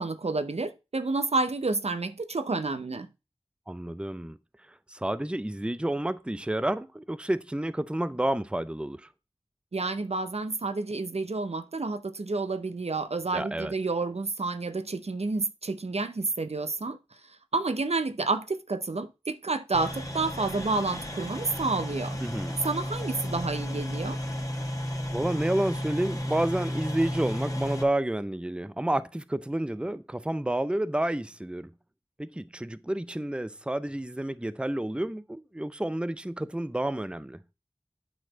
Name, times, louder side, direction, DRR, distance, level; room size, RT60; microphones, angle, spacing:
voice 1, 0.0-3.1 9.7-17.0 17.5-22.2 22.6-24.2, right 3 dB, 70° right, 0.7 m, -30 dB
voice 2, 3.7-4.4 4.7-9.1 13.3-13.7 22.2-22.6 25.1-31.7 32.2-37.4, right 1 dB, 10° right, 0.6 m, -30 dB
sound 1, 19.7-27.8, equal, 30° left, 1.7 m, -33 dB
9.2 x 4.1 x 6.1 m
wide cardioid pair, 55°, 11 cm